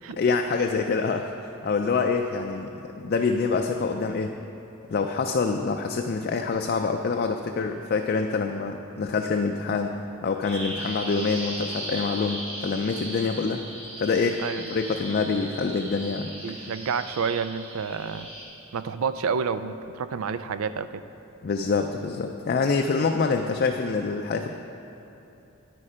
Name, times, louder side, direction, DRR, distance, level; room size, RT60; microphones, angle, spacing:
voice 1, 0.2-4.3 4.9-13.7 14.0-14.4 14.7-16.3 21.4-24.5, left 4 dB, 45° left, 4 dB, 0.4 m, -26 dB
Bird vocalization bird call bird song, 10.4-18.4, right 1 dB, 30° right, 1.9 m, -37 dB
voice 2, 14.4-14.9 16.4-18.3 18.7-21.0, right 6 dB, 85° right, 13 dB, 0.4 m, -29 dB
9.6 x 8.5 x 5.0 m, 2.9 s
head